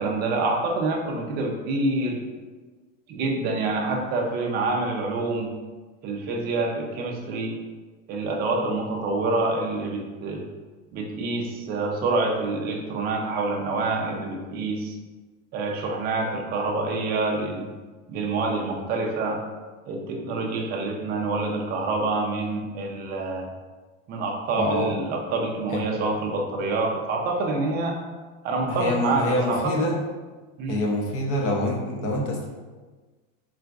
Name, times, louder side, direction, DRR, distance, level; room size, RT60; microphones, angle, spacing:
voice 1, 0.0-2.2 3.1-5.5 6.0-7.6 8.1-10.4 10.9-14.9 15.5-17.7 18.1-19.4 19.9-23.5 24.1-28.0 28.4-29.9 30.6-30.9, right 3 dB, 25° right, 1 dB, 0.4 m, -27 dB
voice 2, 24.6-24.9 25.7-25.8 28.7-30.0 30.7-32.5, left 1 dB, 35° left, 0 dB, 0.6 m, -26 dB
3.9 x 2.4 x 2.2 m, 1.3 s
supercardioid pair, 130°, 39 cm